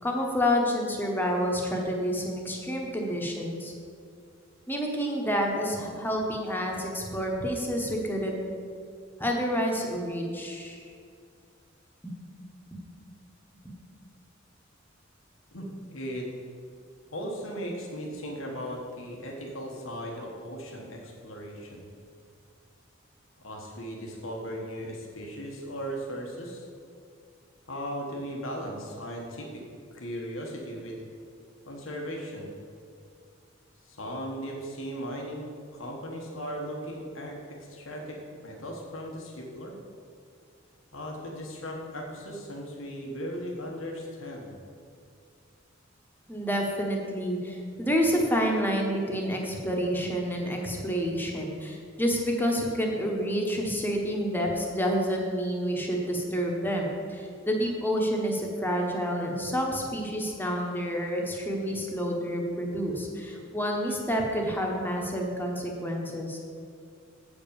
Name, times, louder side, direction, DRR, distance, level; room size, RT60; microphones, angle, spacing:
voice 1, 0.0-3.7 4.7-8.4 9.2-10.8 12.0-12.1 13.6-13.7 46.3-66.4, equal, 10° left, 0 dB, 1.2 m, -29 dB
voice 2, 15.5-16.3 17.1-21.9 23.4-26.7 27.7-29.6 29.9-31.0 31.7-32.5 33.8-35.4 35.7-39.8 40.9-44.6, equal, 90° left, -1 dB, 1.3 m, -37 dB
8.0 x 5.2 x 7.0 m, 2.2 s
head